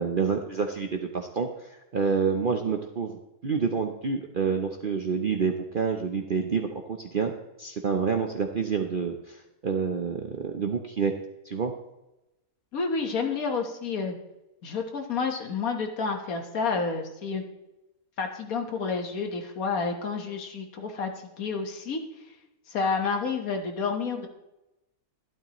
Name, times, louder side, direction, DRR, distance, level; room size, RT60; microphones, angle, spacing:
voice 1, 0.0-3.1 3.4-7.3 7.6-11.1 11.4-11.7, right 5 dB, 55° right, 4 dB, 0.5 m, -28 dB
voice 2, 12.7-14.2 14.6-17.4 18.2-21.1 21.4-22.0 22.7-24.3, left 4 dB, 60° left, 4 dB, 1.6 m, -29 dB
12.0 x 12.0 x 3.0 m, 0.96 s
omnidirectional pair, 1.8 m